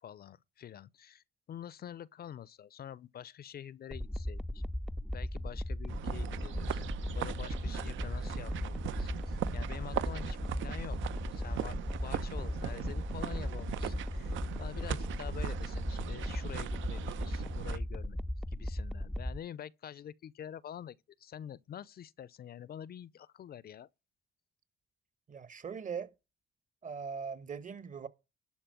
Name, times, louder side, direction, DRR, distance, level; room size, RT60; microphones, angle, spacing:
voice 1, 0.0-4.6 5.1-6.8 7.1-11.0 11.3-11.8 12.0-18.2 18.5-23.9, left 9 dB, 50° left, 0.5 m, -47 dB
sound 1, 3.9-19.4, left 1 dB, ahead, 0.4 m, -37 dB
sound 2, 5.9-17.8, right 10 dB, 80° right, 0.8 m, -40 dB
voice 2, 25.3-26.1 26.8-28.1, right 6 dB, 40° right, 1.2 m, -40 dB
11.5 x 4.2 x 7.6 m
cardioid pair, 90°, 20 cm